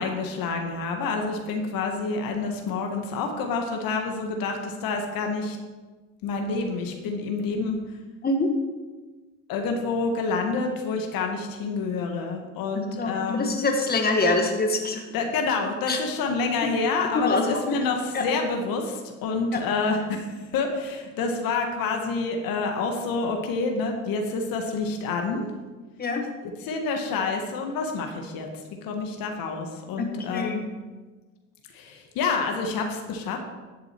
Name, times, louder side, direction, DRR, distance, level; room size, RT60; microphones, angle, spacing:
voice 1, 0.0-5.6 6.2-7.8 9.5-13.5 15.1-25.5 26.4-28.5 28.8-30.6 31.7-33.4, left 4 dB, 60° left, 3 dB, 1.7 m, -28 dB
voice 2, 13.0-15.0 15.9-16.0 17.1-17.6 18.1-18.2 19.5-19.6 26.0-26.2 30.0-30.7, left 2 dB, 25° left, 3 dB, 1.6 m, -25 dB
11.0 x 7.8 x 4.5 m, 1.3 s
hypercardioid pair, 75°, 39 cm